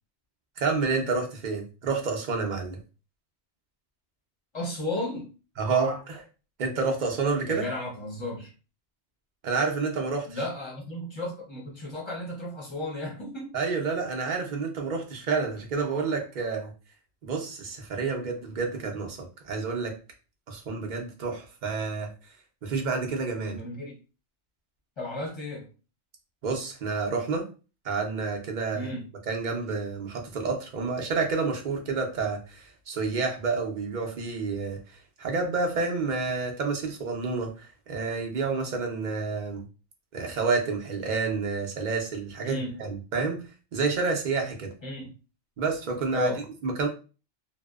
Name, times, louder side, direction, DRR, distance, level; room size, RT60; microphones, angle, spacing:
voice 1, 0.6-2.8 5.6-6.2 6.6-7.7 9.4-10.4 13.5-16.7 17.2-19.9 20.5-22.1 22.6-23.6 26.4-27.5 27.8-28.9 29.3-39.6 40.1-43.4 43.7-44.7 45.6-46.9, right 4 dB, 50° right, 0.6 m, -29 dB
voice 2, 4.5-5.3 7.4-8.5 10.3-13.5 23.5-23.9 25.0-25.7 28.7-29.1 42.4-42.8 44.8-45.1 46.1-46.4, left 1 dB, 30° left, 0.7 m, -34 dB
2.7 x 2.0 x 2.2 m
omnidirectional pair, 1.2 m